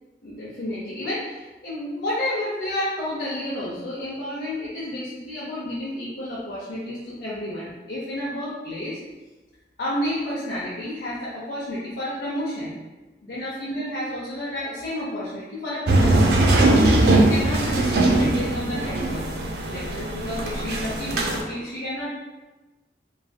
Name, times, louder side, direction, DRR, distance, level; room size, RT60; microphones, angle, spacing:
voice 1, 0.2-9.0 9.8-12.8 13.2-16.3 17.1-19.2 19.7-22.1, left 1 dB, 70° left, -9 dB, 0.6 m, -30 dB
sound 1, 15.9-21.4, right 2 dB, 65° right, 0.4 m, -20 dB
3.2 x 2.6 x 2.2 m, 1.2 s
head